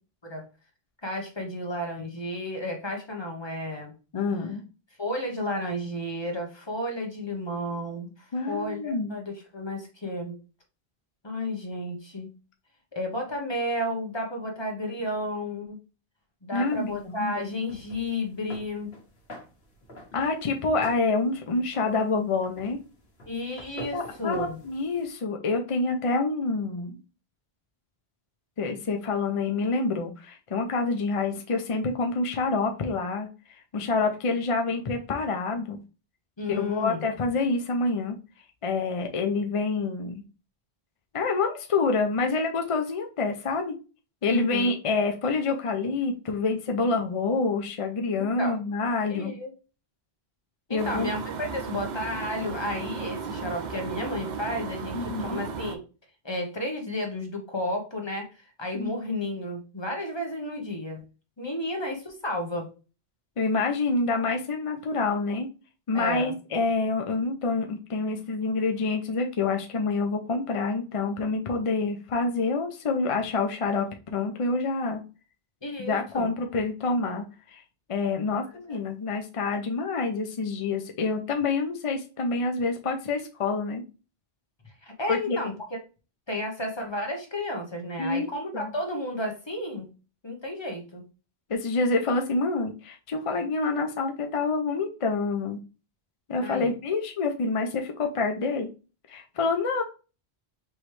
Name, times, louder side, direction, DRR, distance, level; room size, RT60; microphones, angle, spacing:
voice 1, 1.0-3.9 5.0-8.1 8.5-10.3 11.2-12.3 12.9-15.8 16.4-18.9 23.3-24.6 36.4-37.0 44.3-44.7 48.2-48.6 49.1-49.5 50.7-55.8 56.2-58.3 58.6-61.0 61.4-62.7 65.9-66.3 75.6-76.3 84.8-85.8 86.3-89.9 90.2-91.0 96.4-96.7, left 1 dB, 25° left, 1 dB, 1.0 m, -32 dB
voice 2, 4.1-4.6 8.3-9.1 16.5-17.5 20.1-22.8 23.9-27.0 28.6-35.8 36.5-38.2 38.6-40.2 41.1-43.7 44.2-49.3 50.7-51.1 54.9-55.4 58.7-59.0 63.4-65.5 65.9-75.0 75.8-77.6 77.9-83.8 85.1-85.5 88.0-88.7 91.5-95.6 96.3-98.7 99.1-99.8, left 3 dB, 45° left, 4 dB, 0.5 m, -27 dB
sound 1, 16.7-25.1, left 1 dB, 70° left, 1.4 m, -47 dB
sound 2, 50.8-55.8, right 5 dB, 50° right, 0.6 m, -35 dB
4.7 x 3.0 x 3.2 m, 0.33 s
omnidirectional pair, 1.1 m